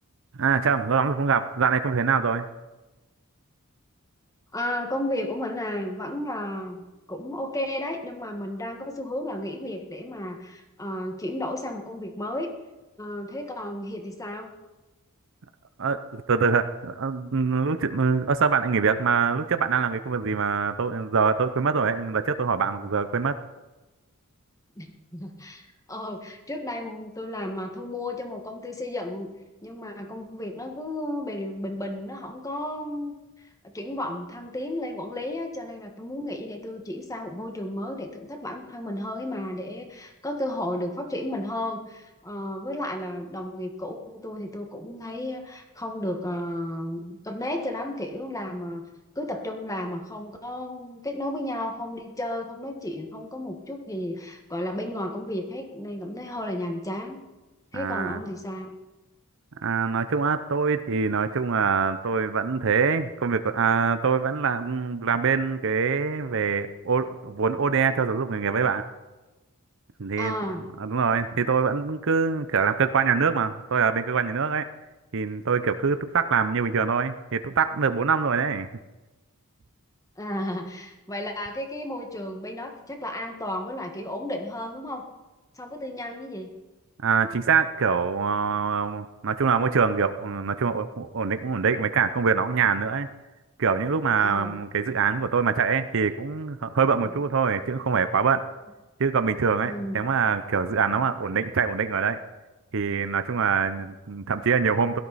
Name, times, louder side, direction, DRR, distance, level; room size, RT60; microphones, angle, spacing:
voice 1, 0.4-2.5 15.8-23.3 57.7-58.2 59.6-68.8 70.0-70.4 70.8-74.6 75.1-78.7 87.0-93.1 93.6-98.4 99.0-102.2 102.7-105.0, right 5 dB, 60° right, 11 dB, 0.7 m, -24 dB
voice 2, 4.5-6.8 7.1-12.5 13.0-14.5 24.8-29.3 29.6-33.1 33.6-48.8 49.1-57.2 57.7-58.8 70.2-70.6 80.2-85.1 85.6-86.5 94.2-94.5 97.0-97.1 99.6-100.0 100.8-101.0, left 1 dB, 15° left, 4 dB, 1.6 m, -33 dB
17.0 x 12.5 x 4.2 m, 1.1 s
head